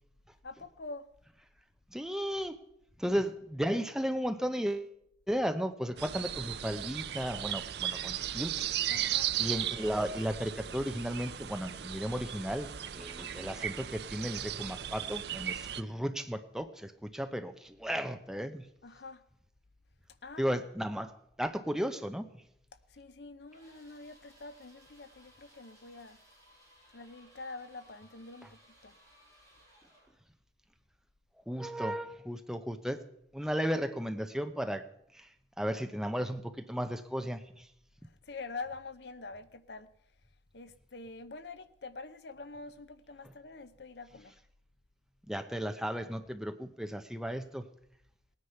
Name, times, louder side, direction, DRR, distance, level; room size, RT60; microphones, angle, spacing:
voice 1, 0.4-1.1 3.0-3.2 8.9-9.3 18.8-19.2 20.2-20.5 22.9-26.2 26.9-28.9 38.3-39.9 40.5-44.4, left 3 dB, 60° left, 0.7 m, -45 dB
voice 2, 1.9-2.6 3.0-4.9 5.3-8.5 9.4-12.7 12.9-18.7 20.4-21.1 21.4-22.2 31.5-33.0 33.3-34.8 35.1-35.3 35.6-37.7 43.2-43.3 45.3-47.7, equal, 5° right, 0.7 m, -34 dB
sound 1, 6.0-15.8, right 11 dB, 60° right, 0.5 m, -36 dB
sound 2, 23.5-30.2, equal, 15° left, 4.5 m, -62 dB
18.5 x 9.6 x 5.7 m
head